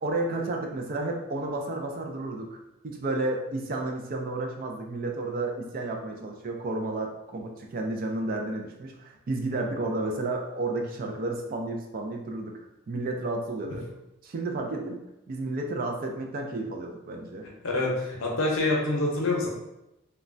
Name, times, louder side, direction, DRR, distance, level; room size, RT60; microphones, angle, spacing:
voice 1, 0.0-2.6 2.8-12.6 12.9-13.9 14.2-17.5, right 2 dB, 40° right, 2 dB, 0.3 m, -32 dB
voice 2, 17.6-19.5, left 2 dB, 65° left, -1 dB, 0.7 m, -26 dB
3.1 x 2.2 x 2.5 m, 0.92 s
head